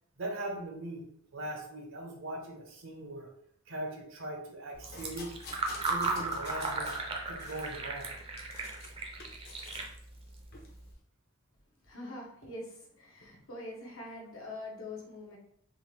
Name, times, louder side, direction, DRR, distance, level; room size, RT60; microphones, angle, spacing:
voice 1, 0.2-1.0 1.3-3.3 3.7-5.3 5.9-6.9 7.2-8.1, right 1 dB, 70° right, 2 dB, 0.8 m, -40 dB
Fill (with liquid), 4.7-10.9, right 3 dB, 25° right, 0.5 m, -37 dB
sound 1, 4.9-7.1 7.4-8.9 9.2-9.9 10.5-10.7, left 3 dB, 50° left, 0.7 m, -48 dB
voice 2, 11.8-15.4, left 2 dB, 80° left, -2 dB, 1.1 m, -44 dB
3.8 x 2.5 x 3.2 m, 0.68 s
head